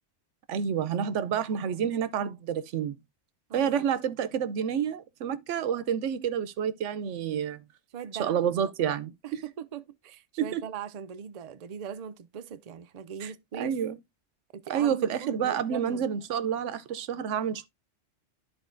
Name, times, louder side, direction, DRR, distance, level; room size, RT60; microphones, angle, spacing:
voice 1, 0.5-3.0 3.5-7.6 8.2-9.4 10.4-10.6 13.2-13.3 13.6-14.0 14.7-17.7, right 8 dB, 90° right, 1.0 m, -29 dB
voice 2, 3.5-3.9 7.9-8.4 9.2-13.7 14.5-16.1, right 7 dB, 50° right, 0.5 m, -40 dB
12.5 x 4.3 x 2.5 m
omnidirectional pair, 1.2 m